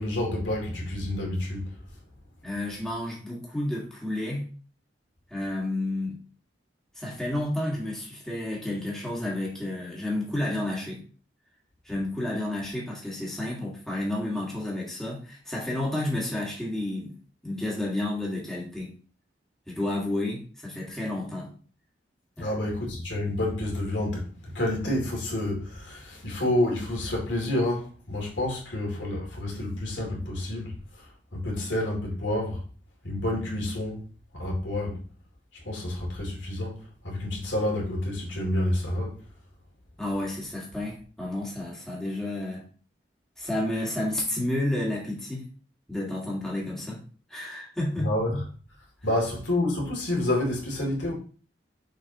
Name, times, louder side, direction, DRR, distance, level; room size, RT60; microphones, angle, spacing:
voice 1, 0.0-1.7 22.4-24.3 24.5-31.1 31.3-32.6 33.0-34.0 34.3-35.0 35.6-39.2 48.0-48.4 49.0-51.2, left 1 dB, 75° left, 2.6 m, -29 dB
voice 2, 2.4-4.5 5.3-6.2 7.0-11.0 11.8-17.2 17.4-18.9 19.7-21.5 22.4-22.6 40.0-42.7 43.4-45.5 45.9-47.0 47.3-48.1, left 1 dB, 5° left, 1.8 m, -31 dB
6.6 x 5.3 x 2.9 m
head